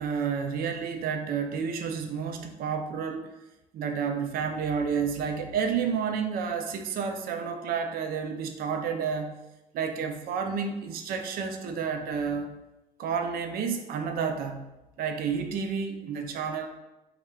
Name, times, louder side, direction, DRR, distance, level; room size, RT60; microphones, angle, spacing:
voice 1, 0.0-3.3 3.7-9.4 9.7-12.5 13.0-14.7 15.0-16.7, right 6 dB, 60° right, 6 dB, 0.5 m, -30 dB
3.5 x 2.3 x 4.2 m, 0.96 s
cardioid pair, 110°, 17 cm